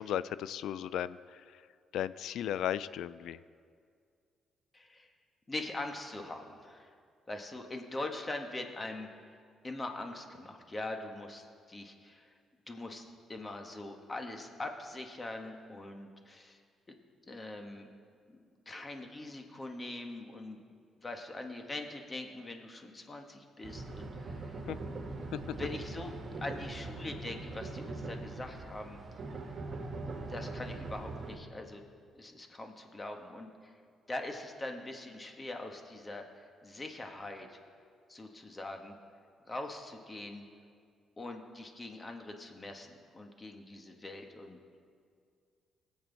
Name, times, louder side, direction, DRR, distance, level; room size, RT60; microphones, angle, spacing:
voice 1, 0.0-1.4 1.9-3.4 24.7-24.8 25.3-25.4, left 11 dB, 80° left, 17 dB, 0.3 m, -35 dB
voice 2, 4.7-5.1 5.5-6.9 7.3-9.1 9.6-12.3 12.7-16.6 16.9-17.0 17.3-17.9 18.3-20.6 21.0-24.6 25.5-29.0 30.2-31.8 32.1-33.8 34.1-37.6 38.1-39.0 39.5-40.4 41.2-44.6, left 2 dB, 25° left, 4 dB, 1.5 m, -42 dB
sound 1, 23.6-31.4, right 3 dB, 45° right, 1.8 m, -41 dB
20.0 x 8.0 x 4.1 m, 2.2 s
cardioid pair, 90°, 0 cm